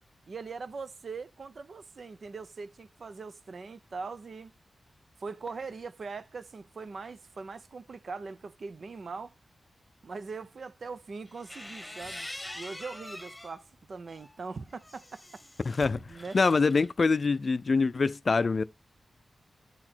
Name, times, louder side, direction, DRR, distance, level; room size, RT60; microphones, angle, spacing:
voice 1, 0.3-4.5 5.2-9.3 10.0-12.3 12.5-15.4 16.1-16.4, right 4 dB, 60° right, 0.6 m, -41 dB
sound 1, 11.3-13.6 14.1-16.9, left 1 dB, 10° left, 1.1 m, -44 dB
voice 2, 15.6-16.0 16.3-18.6, left 4 dB, 50° left, 0.4 m, -25 dB
8.8 x 4.0 x 4.4 m
wide cardioid pair, 80°, 0 cm